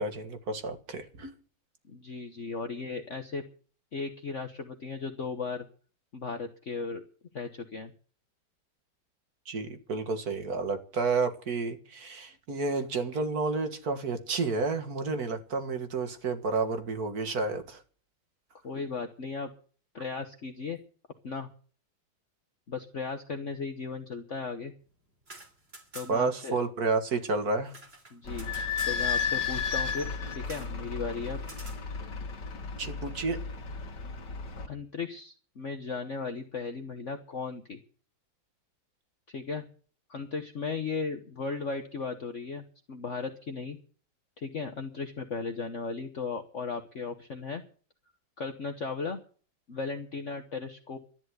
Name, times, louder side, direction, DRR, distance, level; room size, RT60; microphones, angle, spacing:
voice 1, 0.0-1.3 9.5-17.8 26.1-27.7 32.8-33.4, right 4 dB, 55° right, 8 dB, 2.2 m, -30 dB
voice 2, 1.9-3.4 3.9-5.7 6.1-7.0 7.3-7.9 18.6-19.5 19.9-20.8 21.2-21.5 22.7-24.7 25.9-26.6 28.1-28.5 28.8-31.4 34.7-37.8 39.3-39.6 40.1-43.8 44.4-47.6 48.4-49.2 49.7-51.0, left 4 dB, 45° left, 5 dB, 1.4 m, -36 dB
sound 1, 25.1-26.4 26.6-26.7 27.0-29.0 30.4-30.8 31.4-31.8, right 2 dB, 30° right, 3.3 m, -48 dB
Idling / Squeak, 28.2-34.7, left 6 dB, 65° left, 2.5 m, -33 dB
13.0 x 11.0 x 8.0 m, 0.41 s
omnidirectional pair, 2.1 m